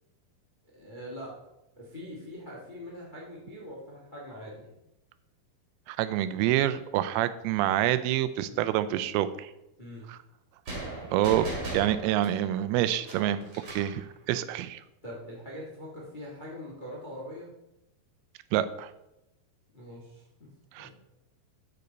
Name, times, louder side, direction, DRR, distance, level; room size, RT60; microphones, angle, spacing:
voice 1, 0.7-1.3 1.7-4.7 8.5-8.7 9.8-10.1 15.0-17.5 19.7-20.5 20.7-20.9, equal, 75° left, -4 dB, 0.4 m, -43 dB
voice 2, 5.9-9.5 10.1-10.2 11.1-11.5 11.7-13.5 13.7-14.8 18.5-18.9 20.7-20.9, right 12 dB, 85° right, 13 dB, 2.5 m, -27 dB
sound 1, 10.7-14.0, right 2 dB, 40° right, 2.5 m, -38 dB
6.8 x 6.6 x 5.1 m, 0.89 s
omnidirectional pair, 4.4 m